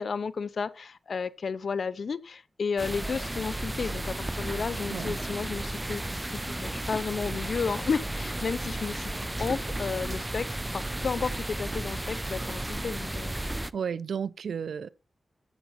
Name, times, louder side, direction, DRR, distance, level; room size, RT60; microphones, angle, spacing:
voice 1, 0.0-13.3, left 5 dB, 65° left, 0.5 m, -33 dB
sound 1, 2.8-13.7, right 1 dB, 15° right, 0.4 m, -33 dB
voice 2, 13.7-14.9, right 7 dB, 90° right, 0.4 m, -32 dB
13.5 x 8.1 x 3.0 m
wide cardioid pair, 100°, 0 cm